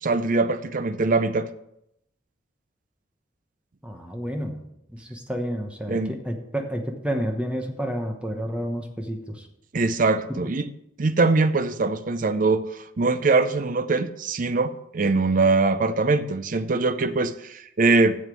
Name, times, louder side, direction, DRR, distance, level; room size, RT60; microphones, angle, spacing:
voice 1, 0.0-1.5 5.9-6.1 9.7-10.6 11.0-18.2, right 3 dB, 45° right, 11 dB, 0.5 m, -22 dB
voice 2, 3.8-4.6 4.9-9.5, equal, 5° right, 3 dB, 1.1 m, -30 dB
8.1 x 7.3 x 6.1 m, 0.80 s
head